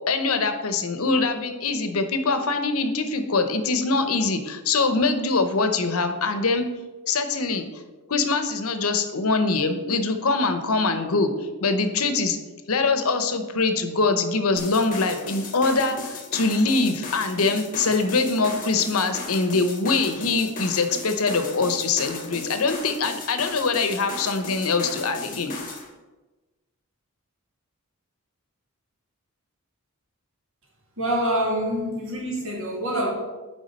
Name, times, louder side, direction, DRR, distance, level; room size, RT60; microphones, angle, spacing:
voice 1, 0.1-6.6 7.1-7.6 8.1-11.3 11.6-12.4 12.7-25.5, left 3 dB, 70° left, 8 dB, 0.8 m, -23 dB
sound 1, 14.6-25.9, left 3 dB, 40° left, 1.3 m, -36 dB
voice 2, 31.0-33.1, equal, 60° right, -2 dB, 2.1 m, -26 dB
9.4 x 3.6 x 5.2 m, 1.2 s
head